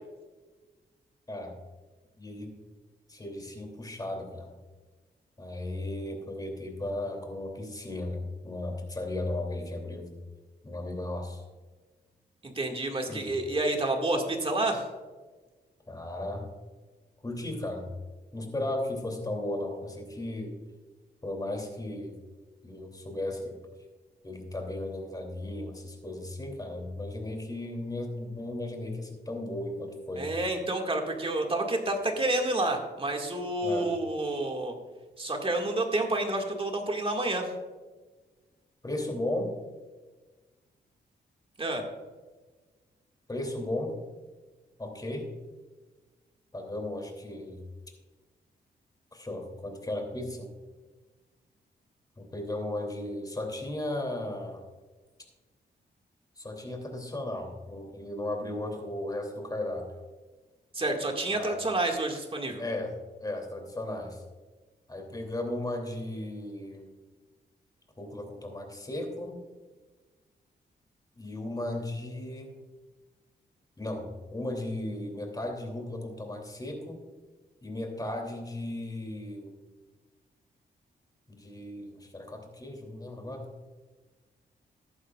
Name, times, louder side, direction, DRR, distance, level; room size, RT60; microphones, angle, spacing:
voice 1, 2.2-2.5 3.1-4.5 5.4-10.1 10.6-11.4 13.1-13.3 15.9-16.4 17.2-17.9 18.3-20.5 21.2-22.2 22.6-23.6 24.2-30.3 33.6-33.9 38.8-39.5 43.3-44.0 44.8-45.3 46.5-47.6 49.1-50.5 52.2-54.6 56.4-59.8 61.3-61.6 62.6-62.9 63.2-64.2 64.9-66.9 68.0-69.4 71.2-72.6 73.8-77.0 77.6-79.5 81.3-83.5, left 1 dB, 20° left, 2 dB, 2.9 m, -35 dB
voice 2, 12.4-14.8 30.2-34.7 35.2-37.5 41.6-41.8 60.7-62.6, right 2 dB, 30° right, 2 dB, 2.0 m, -29 dB
14.0 x 11.0 x 2.4 m, 1.3 s
cardioid pair, 85°, 18 cm